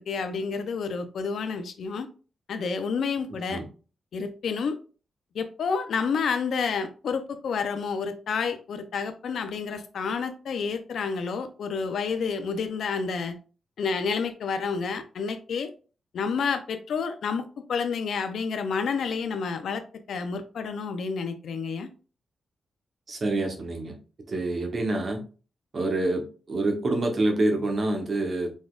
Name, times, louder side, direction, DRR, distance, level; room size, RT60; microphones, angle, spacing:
voice 1, 0.1-2.1 2.5-3.6 4.1-4.8 5.3-13.4 13.8-15.7 16.1-19.8 20.1-21.9, left 5 dB, 65° left, 9 dB, 0.5 m, -29 dB
voice 2, 23.1-23.9 24.3-25.2 25.7-28.5, right 2 dB, 35° right, 4 dB, 0.9 m, -27 dB
4.9 x 4.0 x 2.4 m, 0.36 s
wide cardioid pair, 175°, 0 cm